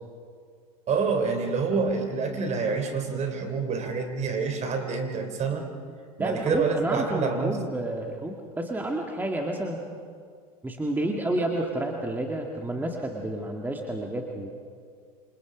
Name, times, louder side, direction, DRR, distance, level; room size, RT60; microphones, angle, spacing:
voice 1, 0.9-5.7 6.2-7.6, right 5 dB, 35° right, 5 dB, 4.1 m, -27 dB
voice 2, 6.2-9.8 10.6-14.5, right 1 dB, 10° right, 1 dB, 2.2 m, -30 dB
28.5 x 27.0 x 5.2 m, 2.1 s
hypercardioid pair, 95°, 20 cm